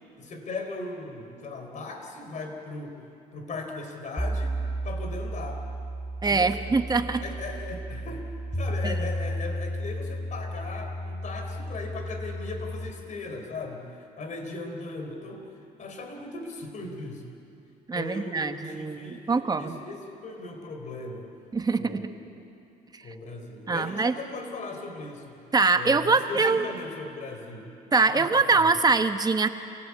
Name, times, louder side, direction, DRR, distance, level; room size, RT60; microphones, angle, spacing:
voice 1, 0.2-3.0 3.3-4.5 4.8-5.6 6.3-6.8 7.2-8.3 8.5-13.9 14.2-17.2 17.9-21.3 21.7-22.4 23.0-25.4 25.7-27.7 28.1-28.7, left 3 dB, 45° left, 4 dB, 3.9 m, -38 dB
sound 1, 4.2-12.9, equal, 10° left, 3.1 m, -33 dB
voice 2, 6.2-7.2 8.8-8.9 17.9-19.7 21.5-22.1 23.7-24.1 25.5-26.6 27.9-29.5, right 4 dB, 25° right, 8 dB, 1.1 m, -23 dB
27.5 x 17.5 x 8.4 m, 2.7 s
cardioid pair, 110°, 17 cm